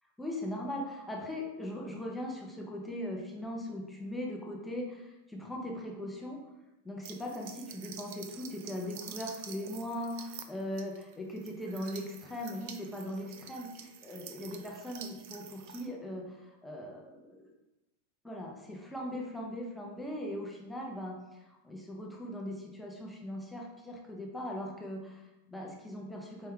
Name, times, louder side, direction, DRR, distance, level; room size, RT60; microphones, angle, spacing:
voice 1, 0.2-6.4 6.8-17.5 18.2-26.5, left 1 dB, 5° left, -1 dB, 0.5 m, -39 dB
sound 1, 7.0-15.9, right 8 dB, 50° right, 0.4 m, -48 dB
4.5 x 3.3 x 3.5 m, 0.96 s
supercardioid pair, 160°, 0 cm